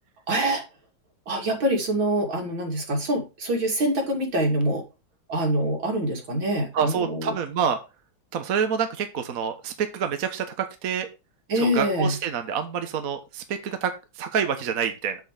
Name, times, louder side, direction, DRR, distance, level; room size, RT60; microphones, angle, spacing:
voice 1, 0.3-0.6 1.3-4.8 5.3-7.3 11.5-12.2, right 1 dB, 80° right, 0 dB, 3.8 m, -25 dB
voice 2, 6.7-7.8 8.3-11.1 11.6-13.9 14.2-15.2, right 7 dB, 50° right, 7 dB, 1.4 m, -27 dB
7.8 x 7.5 x 3.4 m, 0.27 s
omnidirectional pair, 2.1 m